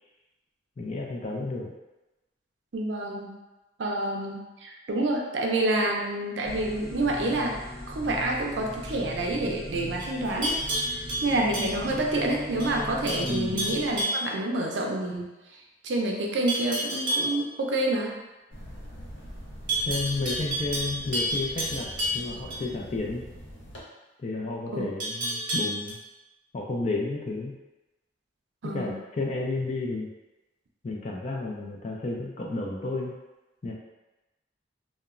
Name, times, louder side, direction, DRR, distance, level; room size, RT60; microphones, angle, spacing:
voice 1, 0.8-1.7 13.2-13.7 19.8-21.9 22.1-23.2 24.2-26.0 26.5-27.5 28.6-30.1 30.8-33.1 33.6-33.7, left 2 dB, 35° left, -1 dB, 0.4 m, -31 dB
voice 2, 2.7-3.4 3.8-7.6 7.9-10.6 11.2-15.3 15.8-18.2 24.7-24.9 28.6-29.0, right 2 dB, 65° right, 0 dB, 0.4 m, -28 dB
sound 1, 6.4-14.0, left 1 dB, 10° left, 0.8 m, -39 dB
Livestock farm animals working animals, 10.0-12.2 12.6-12.8 13.1-14.3 16.5-17.3 19.7-22.6 25.0-25.9, equal, 45° right, 0.8 m, -30 dB
sound 2, 18.5-23.8, equal, 75° left, 0.6 m, -43 dB
2.9 x 2.1 x 2.4 m, 1.1 s
head